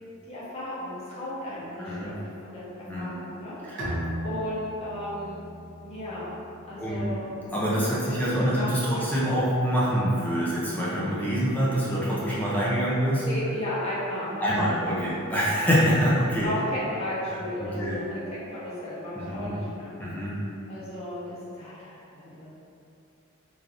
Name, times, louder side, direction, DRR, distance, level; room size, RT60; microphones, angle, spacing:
voice 1, 0.3-2.1 2.4-2.6 2.9-3.6 4.2-5.4 5.8-6.4 6.7-7.3 8.0-9.1 13.2-15.2 16.4-19.9 20.7-22.5, left 1 dB, 30° left, -10 dB, 0.9 m, -34 dB
voice 2, 1.8-2.2 2.9-3.2 3.6-3.9 6.8-7.1 7.5-13.3 14.4-16.5 17.6-18.0 19.1-19.6 20.0-20.4, equal, 10° left, -9 dB, 0.4 m, -25 dB
Bowed string instrument, 3.8-7.2, equal, 60° right, 0.7 m, -37 dB
3.3 x 2.5 x 2.5 m, 2.7 s
head